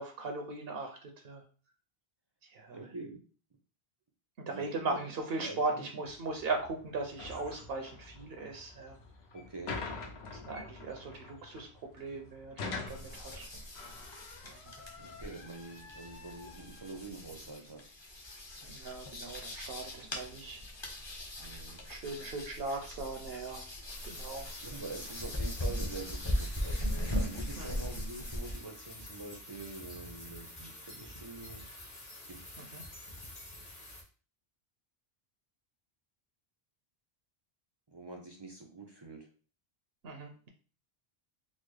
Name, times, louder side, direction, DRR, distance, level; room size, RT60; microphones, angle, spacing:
voice 1, 0.0-1.4 2.4-2.8 4.4-9.0 10.3-13.5 14.4-14.8 18.7-20.6 21.9-23.6 24.0-24.5 27.6-27.9 32.6-32.8 40.0-40.5, right 3 dB, 75° right, 3 dB, 0.8 m, -38 dB
voice 2, 2.7-3.2 4.4-5.0 5.4-5.8 9.3-9.8 15.0-17.8 21.4-21.8 24.6-31.6 32.3-32.4 37.9-39.3, right 3 dB, 35° right, 2 dB, 0.4 m, -45 dB
sound 1, 6.0-17.5, left 4 dB, 90° left, 1.0 m, -46 dB
sound 2, 12.9-28.6, left 1 dB, 30° left, 0.7 m, -39 dB
sound 3, 23.9-34.0, left 1 dB, 45° left, 1.2 m, -49 dB
4.0 x 2.0 x 3.1 m, 0.38 s
omnidirectional pair, 1.0 m